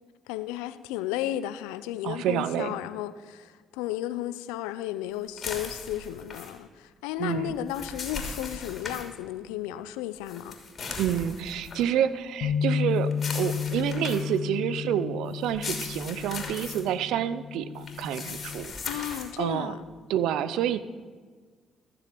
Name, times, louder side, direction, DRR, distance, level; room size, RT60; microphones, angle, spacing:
voice 1, 0.3-10.6 18.8-19.8, left 13 dB, 90° left, 0.5 m, -34 dB
voice 2, 2.0-2.7 7.2-7.5 11.0-18.7 19.0-19.7 20.1-20.8, right 10 dB, 80° right, 0.6 m, -28 dB
sound 1, 5.4-6.5 7.5-9.1 10.3-11.8 13.1-14.4 15.4-16.8 17.8-19.3, left 4 dB, 50° left, 3.0 m, -38 dB
Bass guitar, 12.4-18.7, left 7 dB, 75° left, 1.1 m, -32 dB
14.5 x 7.0 x 6.9 m
supercardioid pair, 60°, 0 cm